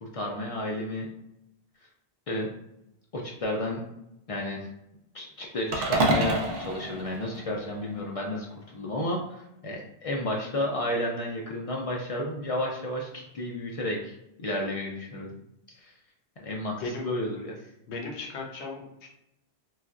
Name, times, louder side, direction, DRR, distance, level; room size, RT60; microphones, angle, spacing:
voice 1, 0.0-1.1 2.3-2.5 3.1-3.8 4.3-4.7 5.1-15.4 15.8-15.9 16.4-17.6, left 1 dB, 65° left, -1 dB, 0.3 m, -32 dB
sound 1, 5.7-8.0, right 2 dB, 65° right, 0.8 m, -28 dB
voice 2, 16.6-17.1 17.9-19.1, left 3 dB, 85° left, 0 dB, 1.0 m, -37 dB
3.2 x 2.4 x 2.3 m, 0.82 s
omnidirectional pair, 1.1 m